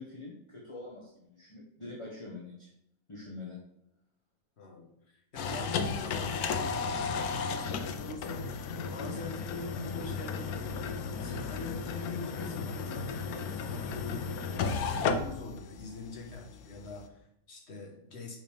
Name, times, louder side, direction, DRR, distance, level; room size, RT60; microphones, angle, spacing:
voice 1, 0.0-2.7 3.1-3.6 9.0-9.2, left 3 dB, 25° left, -3 dB, 1.1 m, -44 dB
voice 2, 4.6-10.9 11.2-18.4, left 3 dB, 50° left, 0 dB, 1.5 m, -44 dB
sound 1, 5.4-17.1, left 5 dB, 85° left, 1.1 m, -34 dB
7.4 x 5.1 x 3.4 m, 0.76 s
omnidirectional pair, 1.6 m